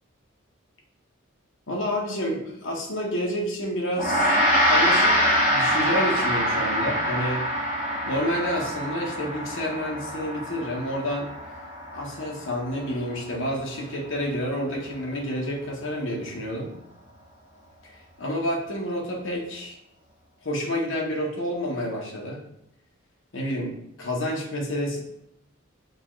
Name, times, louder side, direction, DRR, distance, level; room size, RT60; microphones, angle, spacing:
voice 1, 1.7-4.4 4.7-5.1 5.4-7.4 8.1-11.3 11.9-16.7 17.8-19.8 20.4-22.4 23.3-25.0, equal, 65° left, -1 dB, 1.0 m, -29 dB
Gong, 4.0-13.5, equal, 40° left, 1.1 m, -25 dB
6.3 x 2.4 x 3.1 m, 0.78 s
head